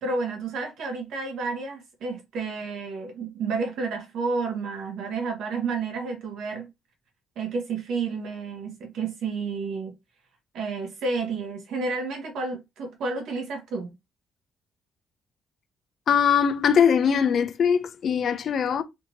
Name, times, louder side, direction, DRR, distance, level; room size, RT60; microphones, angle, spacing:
voice 1, 0.0-6.7 7.3-9.9 10.5-14.0, right 4 dB, 80° right, 1.4 m, -30 dB
voice 2, 16.1-18.8, left 7 dB, 60° left, 0.5 m, -21 dB
3.4 x 2.9 x 2.8 m
cardioid pair, 90°, 0 cm